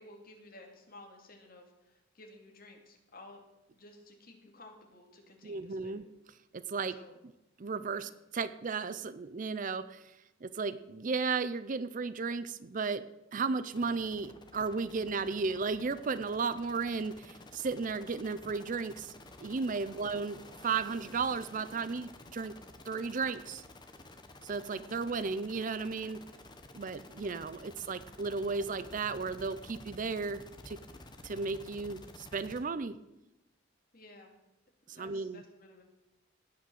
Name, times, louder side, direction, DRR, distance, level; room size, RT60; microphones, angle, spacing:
voice 1, 0.0-3.4 3.7-6.0 6.9-7.2 7.9-8.1 19.8-20.1 33.9-34.3 34.9-35.8, left 2 dB, 45° left, 2 dB, 2.5 m, -54 dB
voice 2, 5.4-6.0 6.5-7.0 7.6-10.1 10.4-13.1 13.3-19.1 19.4-22.5 22.9-23.6 24.4-26.2 26.7-30.8 31.2-33.0 34.9-35.4, right 4 dB, 40° right, 14 dB, 0.5 m, -34 dB
sound 1, 13.7-32.6, left 2 dB, 20° left, 1.2 m, -52 dB
17.5 x 5.9 x 7.6 m, 0.95 s
head